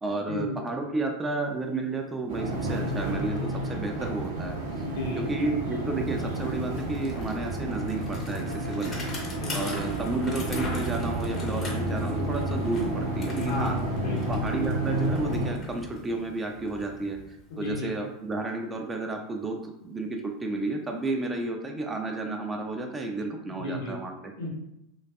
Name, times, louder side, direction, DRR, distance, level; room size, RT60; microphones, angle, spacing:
voice 1, 0.0-4.6 5.2-9.0 9.5-13.8 14.3-24.3, right 2 dB, 15° right, 3 dB, 0.4 m, -32 dB
sound 1, 2.3-15.5, right 1 dB, 65° right, 0.6 m, -31 dB
Bicycle, 4.7-4.8 5.0-17.9, left 2 dB, 30° left, 0.6 m, -42 dB
voice 2, 4.8-5.4 9.4-9.5 13.4-14.4 17.5-17.9 23.5-23.9 24.4-24.5, left 2 dB, 65° left, -2 dB, 0.7 m, -34 dB
2.5 x 2.3 x 2.2 m, 0.82 s
figure-of-eight pair, 85°, 0 cm